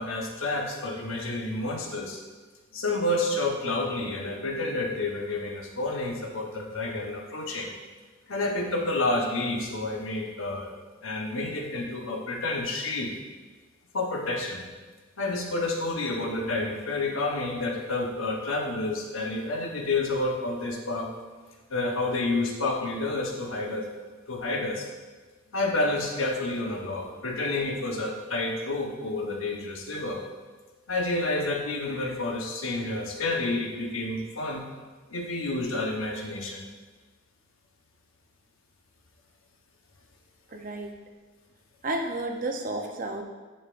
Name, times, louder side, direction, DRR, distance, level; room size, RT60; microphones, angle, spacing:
voice 1, 0.0-2.2 2.7-7.7 8.3-10.7 11.0-13.2 13.9-14.6 15.2-21.1 21.7-23.9 24.3-24.9 25.5-30.2 30.9-34.6 35.1-36.7, left 2 dB, 80° left, 1 dB, 1.0 m, -29 dB
voice 2, 40.5-41.0 41.8-43.2, right 2 dB, 40° right, 3 dB, 0.6 m, -31 dB
10.0 x 5.5 x 2.5 m, 1.4 s
head